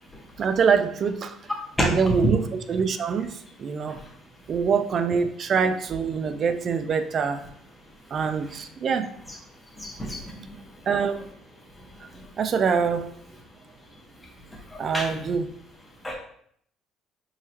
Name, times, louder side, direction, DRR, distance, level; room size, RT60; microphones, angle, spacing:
voice 1, 0.4-1.4 1.8-4.0 4.5-7.4 8.1-9.1 10.9-11.2 12.4-13.1 14.8-15.5, right 6 dB, 50° right, 0.4 m, -24 dB
voice 2, 9.8-10.4 14.7-15.3 16.0-16.1, equal, 10° left, 1.3 m, -29 dB
4.7 x 3.0 x 2.9 m
supercardioid pair, 80°, 0 cm